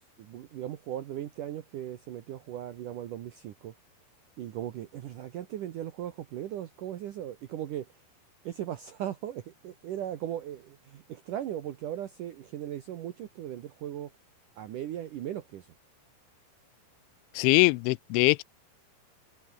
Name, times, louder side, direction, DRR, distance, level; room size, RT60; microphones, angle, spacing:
voice 1, 0.2-3.7 4.4-8.0 8.4-14.1 14.6-15.7, right 11 dB, 75° right, 1.9 m, -38 dB
voice 2, 17.4-18.4, left 24 dB, 85° left, 3.0 m, -22 dB
omnidirectional pair, 5.4 m